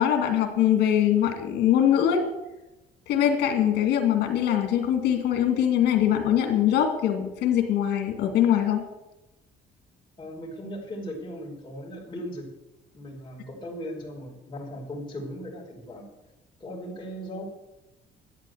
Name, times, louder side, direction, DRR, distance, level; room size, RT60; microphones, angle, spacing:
voice 1, 0.0-2.2 3.1-8.8, left 10 dB, 80° left, 5 dB, 2.3 m, -22 dB
voice 2, 10.2-12.5 12.9-16.1 16.6-17.5, equal, 25° left, -3 dB, 5.0 m, -38 dB
12.5 x 9.2 x 8.0 m, 0.98 s
cardioid pair, 110°, 17 cm